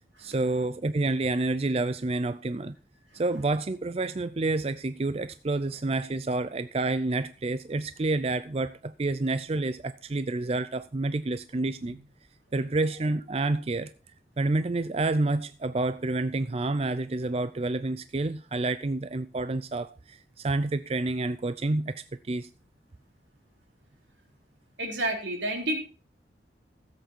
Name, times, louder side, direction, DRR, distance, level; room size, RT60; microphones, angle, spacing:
voice 1, 0.2-2.7 3.1-12.0 12.5-13.9 14.4-22.5, right 2 dB, 35° right, 0.5 m, -29 dB
voice 2, 24.8-25.8, right 1 dB, 85° right, 3.6 m, -30 dB
15.5 x 8.1 x 4.5 m
head